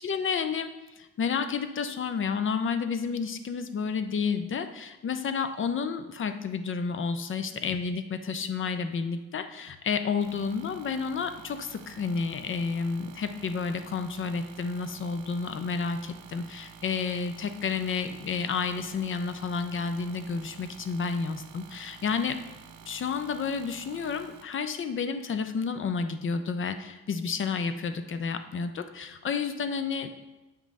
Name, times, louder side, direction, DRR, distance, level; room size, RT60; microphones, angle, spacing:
voice 1, 0.0-22.4 22.9-30.1, left 5 dB, 40° left, 9 dB, 0.6 m, -31 dB
sound 1, 10.2-24.4, right 7 dB, 90° right, 0.6 m, -50 dB
7.4 x 3.1 x 5.4 m, 1.1 s
cardioid pair, 90°, 30 cm